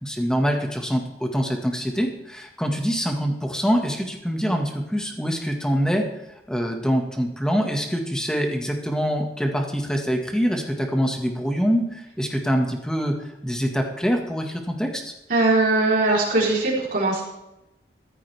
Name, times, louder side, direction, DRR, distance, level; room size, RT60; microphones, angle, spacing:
voice 1, 0.0-6.1 6.5-15.1, equal, 5° left, 2 dB, 1.8 m, -24 dB
voice 2, 15.3-17.2, right 2 dB, 50° right, -4 dB, 4.0 m, -20 dB
14.5 x 13.5 x 3.5 m, 0.91 s
head